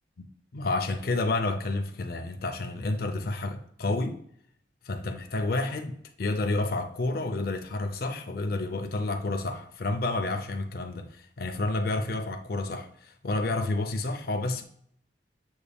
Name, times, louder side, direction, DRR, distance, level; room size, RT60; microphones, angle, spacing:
voice 1, 0.5-4.2 4.8-14.6, left 2 dB, 55° left, 0.5 m, -30 dB
6.9 x 3.4 x 2.2 m
head